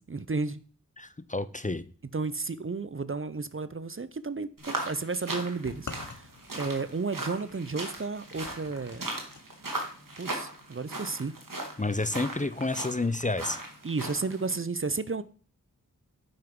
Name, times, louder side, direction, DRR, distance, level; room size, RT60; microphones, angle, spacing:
voice 1, 0.1-0.6 2.1-9.0 10.2-11.3 13.8-15.2, right 4 dB, 40° right, 0.6 m, -33 dB
voice 2, 1.0-1.8 11.8-13.6, left 2 dB, 25° left, 0.6 m, -30 dB
sound 1, 4.6-14.6, right 2 dB, 70° right, 2.2 m, -38 dB
sound 2, 5.6-9.4, left 4 dB, 60° left, 0.9 m, -47 dB
9.0 x 5.8 x 5.3 m
wide cardioid pair, 45°, 34 cm